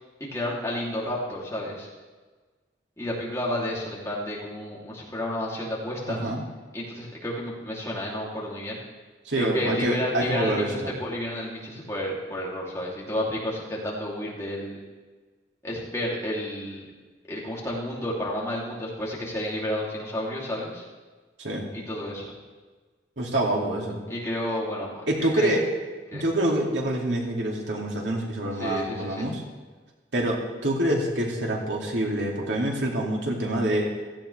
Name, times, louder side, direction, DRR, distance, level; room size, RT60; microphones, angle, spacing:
voice 1, 0.3-1.9 3.0-6.3 6.7-8.8 9.4-14.8 15.6-16.9 17.3-20.8 21.7-22.3 24.1-25.5 26.1-26.2 28.6-29.3, left 1 dB, 15° left, -5 dB, 3.0 m, -31 dB
voice 2, 6.1-6.4 9.3-10.9 21.4-21.7 23.2-24.0 25.1-25.7 26.1-29.4 30.1-33.9, right 1 dB, 85° right, -1 dB, 2.7 m, -26 dB
16.5 x 15.0 x 3.4 m, 1.4 s
head